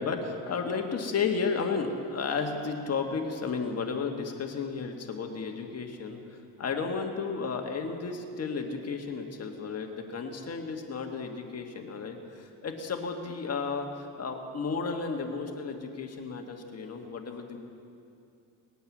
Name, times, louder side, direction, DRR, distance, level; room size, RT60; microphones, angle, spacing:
voice 1, 0.0-17.6, left 5 dB, 40° left, 3 dB, 1.6 m, -33 dB
20.0 x 9.2 x 7.2 m, 2.5 s
cardioid pair, 115°, 40 cm